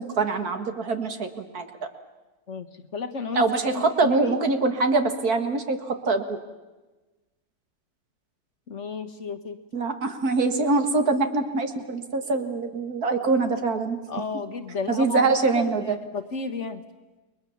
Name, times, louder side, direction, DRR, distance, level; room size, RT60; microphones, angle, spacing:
voice 1, 0.0-1.7 3.3-6.4 9.7-14.0 14.9-16.0, right 3 dB, 65° right, 7 dB, 2.3 m, -24 dB
voice 2, 2.9-3.4 3.7-4.4 8.7-9.6 14.1-15.3 15.5-16.8, left 4 dB, 50° left, 8 dB, 1.4 m, -33 dB
30.0 x 22.0 x 7.2 m, 1.2 s
omnidirectional pair, 1.7 m